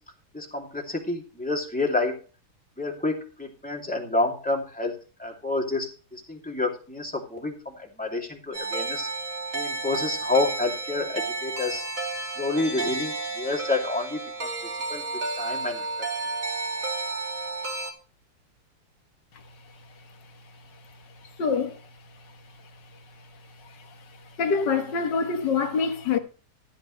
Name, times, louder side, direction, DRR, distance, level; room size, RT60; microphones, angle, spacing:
voice 1, 0.3-2.2 2.8-4.9 5.2-9.1 9.5-11.8 12.4-15.0 15.4-15.8, left 2 dB, 5° left, 2.5 m, -29 dB
sound 1, 8.5-17.9, right 3 dB, 40° right, 2.5 m, -32 dB
voice 2, 21.4-21.7 24.4-26.2, left 5 dB, 55° left, 1.9 m, -25 dB
14.5 x 8.8 x 3.2 m
omnidirectional pair, 2.4 m